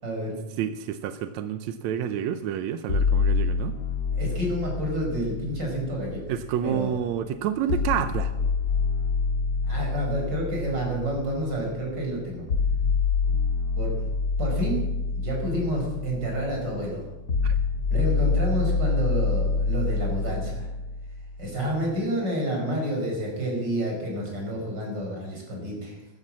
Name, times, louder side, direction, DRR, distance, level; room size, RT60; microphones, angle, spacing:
voice 1, 0.0-0.4 4.1-6.2 6.6-6.9 9.6-12.5 13.8-14.1 14.4-14.9 15.1-17.1 17.9-20.7 21.4-26.0, equal, 30° right, 0 dB, 5.9 m, -29 dB
voice 2, 0.6-3.8 6.3-8.3 17.4-17.5, right 9 dB, 80° right, 10 dB, 1.7 m, -29 dB
sound 1, 2.9-6.9 7.7-21.7, left 4 dB, 45° left, 1.4 m, -27 dB
14.5 x 13.0 x 7.4 m, 1.0 s
omnidirectional pair, 4.0 m